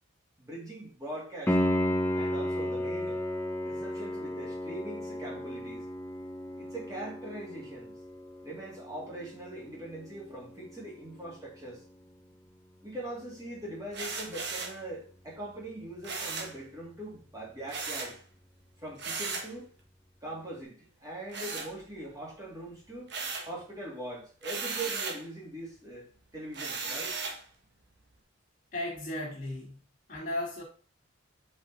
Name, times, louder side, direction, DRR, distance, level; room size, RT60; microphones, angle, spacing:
voice 1, 0.4-1.6 2.1-3.2 3.6-5.8 6.6-8.0 8.4-11.8 12.8-18.2 18.8-19.7 20.2-23.1 23.5-27.2, right 1 dB, 15° right, -5 dB, 2.2 m, -42 dB
Piano, 1.5-12.1 15.4-15.5, equal, 10° left, 0.6 m, -34 dB
sound 1, 13.9-14.8 16.0-16.6 17.7-18.2 19.0-19.5 21.3-22.2 22.6-23.6 24.4-25.2 26.5-27.4, right 4 dB, 55° right, 1.2 m, -36 dB
voice 2, 28.7-29.8 30.1-30.6, left 1 dB, 45° left, -7 dB, 2.0 m, -35 dB
5.3 x 5.2 x 3.9 m, 0.39 s
head